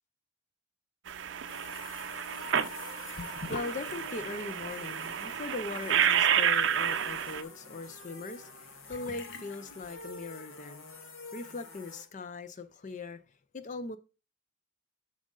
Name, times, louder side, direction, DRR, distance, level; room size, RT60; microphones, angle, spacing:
sound 1, 1.1-7.4, right 8 dB, 60° right, 0.5 m, -30 dB
sound 2, 1.5-12.0, left 3 dB, 75° left, 1.5 m, -48 dB
Sink (filling or washing) / Bathtub (filling or washing), 3.2-10.5, left 3 dB, 60° left, 1.1 m, -49 dB
voice 1, 3.3-11.1 11.3-13.2 13.5-14.0, left 3 dB, 35° left, 0.5 m, -40 dB
7.5 x 6.3 x 3.9 m
head